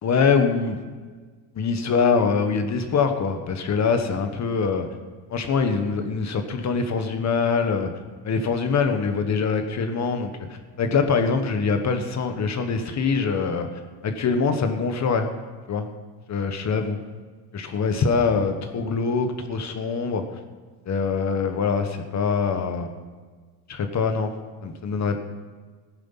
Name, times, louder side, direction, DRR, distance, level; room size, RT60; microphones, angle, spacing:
voice 1, 0.0-0.8 1.5-4.9 5.3-7.9 8.2-10.3 10.8-13.7 14.0-15.3 15.7-15.9 16.3-17.0 17.5-20.2 20.9-22.9 23.7-24.3 24.6-25.2, left 5 dB, 35° left, 7 dB, 1.3 m, -23 dB
15.0 x 9.8 x 5.7 m, 1.4 s
cardioid pair, 130°, 46 cm